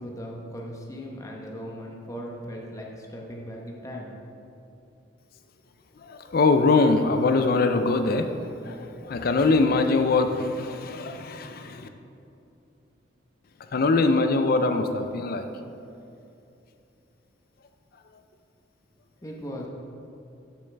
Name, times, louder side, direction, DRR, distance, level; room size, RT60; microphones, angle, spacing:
voice 1, 0.0-4.1 19.2-19.7, equal, 15° left, -1 dB, 0.9 m, -38 dB
voice 2, 6.0-11.9 13.7-15.5, left 3 dB, 50° left, 8 dB, 0.5 m, -23 dB
11.5 x 7.3 x 3.4 m, 2.7 s
head